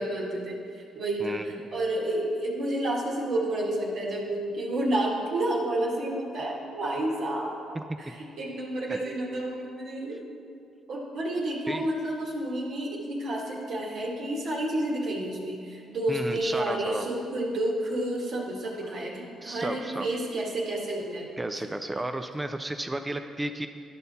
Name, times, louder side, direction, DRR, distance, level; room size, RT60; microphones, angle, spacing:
voice 1, 0.0-7.6 8.0-10.2 10.9-21.3, right 1 dB, 65° right, -3 dB, 1.6 m, -30 dB
voice 2, 7.7-8.1 8.9-9.0 11.7-11.9 16.1-17.1 19.4-20.1 21.4-23.7, right 1 dB, 15° right, 7 dB, 0.4 m, -33 dB
11.5 x 5.5 x 4.1 m, 2.4 s
cardioid pair, 90°, 0 cm